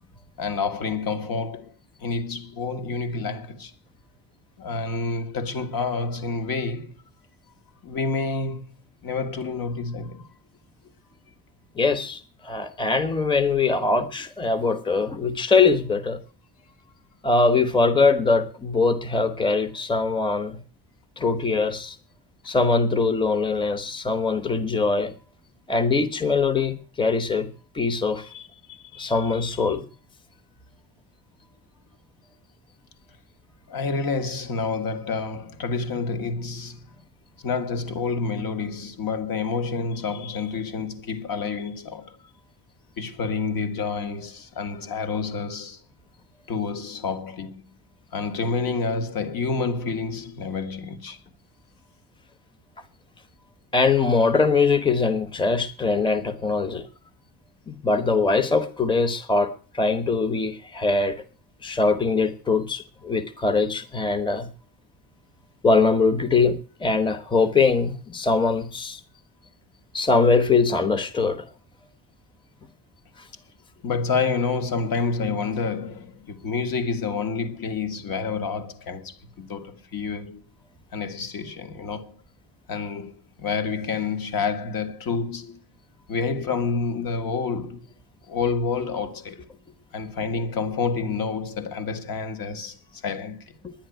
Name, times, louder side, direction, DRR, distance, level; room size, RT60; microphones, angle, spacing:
voice 1, 0.4-1.7 2.0-3.7 4.6-7.0 7.8-8.6 9.0-10.3 28.2-29.7 33.7-36.9 37.4-42.2 43.0-45.8 46.5-47.6 48.1-51.2 73.8-80.4 80.9-82.2 82.7-85.6 86.1-87.9 88.3-89.4 89.9-93.5, left 4 dB, 55° left, 1.8 m, -28 dB
voice 2, 11.8-16.2 17.2-20.6 21.2-22.0 22.4-25.1 25.7-27.5 27.7-28.2 29.0-29.8 53.7-56.8 57.7-61.2 61.6-64.5 65.6-69.0 69.9-71.5 93.6-93.7, left 4 dB, 10° left, 0.9 m, -22 dB
10.5 x 10.5 x 9.2 m
cardioid pair, 155°, 42 cm